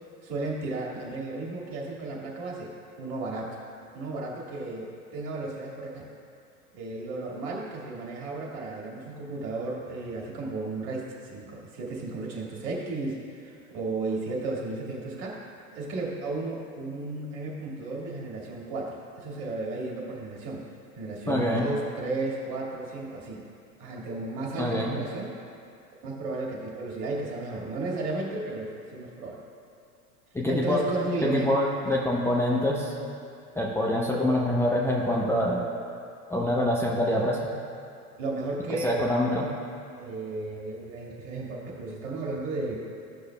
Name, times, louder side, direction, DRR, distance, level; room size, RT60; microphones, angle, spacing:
voice 1, 0.2-2.7 3.0-3.6 3.9-6.1 6.7-15.4 15.7-20.7 20.9-23.4 23.8-25.4 26.0-29.4 30.5-31.5 31.9-32.0 38.2-39.1 40.0-42.8, right 2 dB, 50° right, -2 dB, 2.1 m, -34 dB
voice 2, 21.3-21.7 24.6-24.9 30.3-30.8 31.2-32.9 33.6-35.6 36.3-37.5 38.8-39.5, left 1 dB, 5° left, -4 dB, 0.6 m, -25 dB
14.5 x 6.4 x 2.3 m, 2.5 s
figure-of-eight pair, 85°, 47 cm